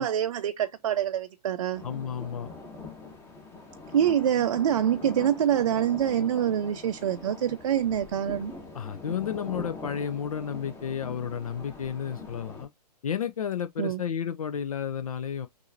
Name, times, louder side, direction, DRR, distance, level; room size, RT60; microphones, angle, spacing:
voice 1, 0.0-1.8 3.9-8.5 13.8-14.0, right 9 dB, 50° right, 0.5 m, -25 dB
sound 1, 1.7-12.7, left 3 dB, 10° left, 1.2 m, -43 dB
voice 2, 1.8-2.5 8.7-12.7 13.0-15.5, left 8 dB, 55° left, 0.5 m, -32 dB
6.2 x 2.6 x 2.6 m
figure-of-eight pair, 120°, 21 cm